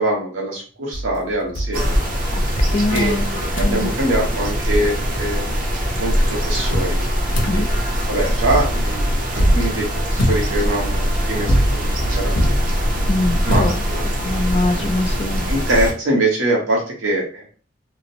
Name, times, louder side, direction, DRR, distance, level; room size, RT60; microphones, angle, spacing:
voice 1, 0.0-1.9 2.9-5.6 6.0-7.0 7.3-7.6 8.1-12.6 13.4-14.0 15.5-17.5, right 1 dB, 90° right, -2 dB, 1.0 m, -23 dB
sound 1, 0.9-2.5 2.9-3.2 3.6-3.8 4.3-4.4 4.6-5.7 6.7-14.3, equal, 70° left, 0.7 m, -25 dB
sound 2, 1.7-15.9, equal, 45° right, 0.6 m, -22 dB
voice 2, 2.3-3.3 3.6-4.0 7.5-7.7 13.1-13.8 14.2-15.5, left 2 dB, 35° left, 7 dB, 0.4 m, -23 dB
3.0 x 2.0 x 2.7 m, 0.39 s
head